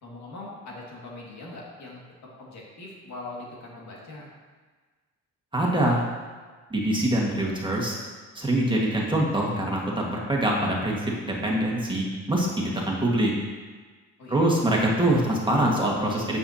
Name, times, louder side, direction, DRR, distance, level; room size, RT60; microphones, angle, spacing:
voice 1, 0.0-4.3 14.2-14.5, left 2 dB, 65° left, -4 dB, 2.2 m, -41 dB
voice 2, 5.5-6.1 6.7-8.0 8.4-13.3 14.3-16.4, right 1 dB, 15° right, -3 dB, 1.8 m, -24 dB
9.3 x 7.2 x 2.9 m, 1.4 s
cardioid pair, 90°, 30 cm